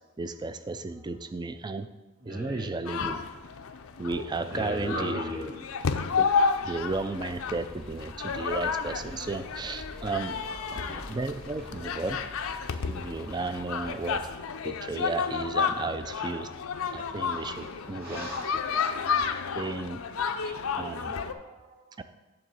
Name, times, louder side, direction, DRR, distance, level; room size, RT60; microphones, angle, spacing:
voice 1, 0.2-1.9 2.3-3.2 4.0-5.4 6.2-6.3 6.6-10.4 11.1-12.2 12.9-14.3 14.6-16.5 16.9-18.3 19.5-20.0 20.4-21.2 22.0-22.1, right 3 dB, 20° right, 11 dB, 0.3 m, -34 dB
voice 2, 2.2-2.7 4.5-5.6 10.7-11.0 11.6-11.9 12.8-12.9 17.2-17.7 18.0-18.5 19.2-19.6 20.4-20.5 21.2-21.8, equal, 40° right, -3 dB, 2.3 m, -38 dB
sound 1, 2.8-21.3, left 5 dB, 75° left, 0.5 m, -31 dB
sound 2, 5.7-14.4, equal, 5° left, 0.7 m, -48 dB
8.8 x 3.8 x 6.9 m, 1.2 s
head